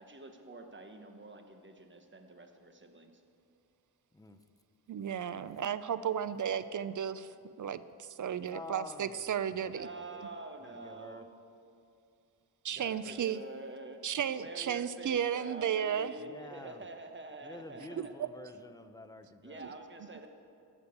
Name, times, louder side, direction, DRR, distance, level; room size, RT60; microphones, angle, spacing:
voice 1, 0.0-3.2 9.6-11.3 12.8-14.0 14.4-18.1 19.4-20.3, right 3 dB, 30° right, 5 dB, 1.1 m, -47 dB
voice 2, 4.9-7.3 7.6-9.9 12.6-13.4 14.0-16.1 17.8-18.3 19.6-19.7, right 8 dB, 50° right, 14 dB, 0.5 m, -34 dB
voice 3, 8.4-10.2 10.6-11.2 12.7-12.9 16.2-16.8 17.4-19.7, left 2 dB, 10° left, 8 dB, 0.6 m, -49 dB
12.5 x 7.0 x 8.3 m, 2.4 s
wide cardioid pair, 110°, 40 cm